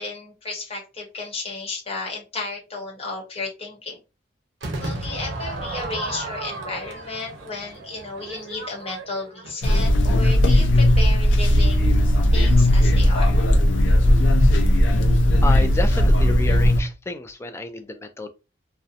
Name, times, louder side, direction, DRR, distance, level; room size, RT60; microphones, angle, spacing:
voice 1, 0.0-4.0 4.8-11.8 12.3-13.4, left 3 dB, 35° left, 1.0 m, -33 dB
Crowd / Fireworks, 4.6-9.9, right 2 dB, 85° right, 0.7 m, -33 dB
sound 1, 9.6-16.8, left 1 dB, 85° left, 0.4 m, -17 dB
voice 2, 15.4-18.3, left 2 dB, 15° left, 0.3 m, -30 dB
2.7 x 2.1 x 2.4 m
head